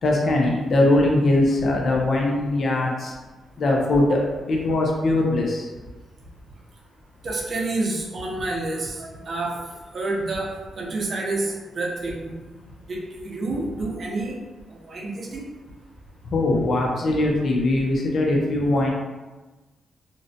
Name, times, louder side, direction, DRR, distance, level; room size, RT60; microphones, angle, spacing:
voice 1, 0.0-3.1 3.6-5.7 16.3-18.9, left 2 dB, 55° left, -1 dB, 0.4 m, -21 dB
voice 2, 7.2-9.6 9.9-12.3 12.9-14.4 14.7-15.5, right 2 dB, 50° right, -1 dB, 0.5 m, -29 dB
2.6 x 2.0 x 2.6 m, 1.2 s
cardioid pair, 105°, 0 cm